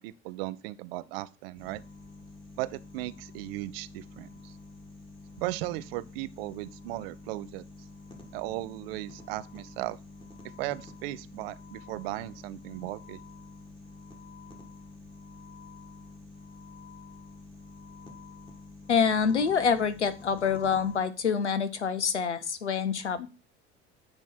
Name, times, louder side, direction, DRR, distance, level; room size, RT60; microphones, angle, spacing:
voice 1, 0.0-1.8 2.6-4.5 5.4-7.6 8.3-10.0 10.6-13.2, right 17 dB, 60° right, 0.5 m, -36 dB
sound 1, 1.6-21.0, left 3 dB, 15° left, 1.5 m, -48 dB
voice 2, 18.9-23.3, left 6 dB, 90° left, 0.5 m, -26 dB
8.7 x 3.0 x 4.1 m
figure-of-eight pair, 60°, 33 cm